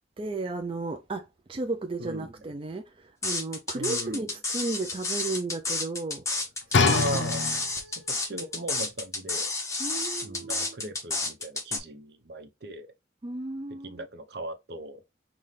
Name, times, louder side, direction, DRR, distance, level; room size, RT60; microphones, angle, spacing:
voice 1, 0.2-6.4 6.7-7.3 9.8-10.8 13.2-14.1, right 3 dB, 30° right, 0.4 m, -34 dB
voice 2, 2.0-2.3 3.7-4.3 6.8-7.4 8.0-9.5 10.2-12.9 13.8-15.0, right 1 dB, 60° right, 0.8 m, -37 dB
sound 1, 3.2-11.8, left 3 dB, 15° left, 0.9 m, -30 dB
sound 2, 6.7-8.0 8.8-8.9, left 4 dB, 80° left, 0.5 m, -25 dB
5.7 x 2.3 x 3.3 m
head